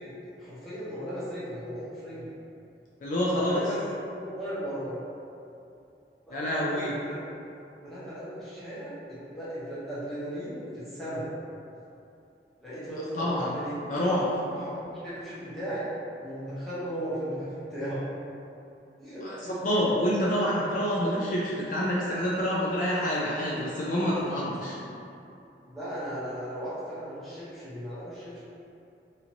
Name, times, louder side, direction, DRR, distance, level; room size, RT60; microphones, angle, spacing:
voice 1, 0.0-2.3 3.4-5.0 6.3-7.2 7.8-11.3 12.6-13.8 14.5-15.9 16.2-18.0 19.0-19.5 25.7-28.4, equal, ahead, -13 dB, 0.8 m, -36 dB
voice 2, 3.0-3.6 6.3-6.9 13.1-13.5 13.9-14.3 19.2-19.3 19.6-24.8, equal, 45° left, -6 dB, 0.3 m, -27 dB
2.8 x 2.5 x 2.9 m, 2.7 s
head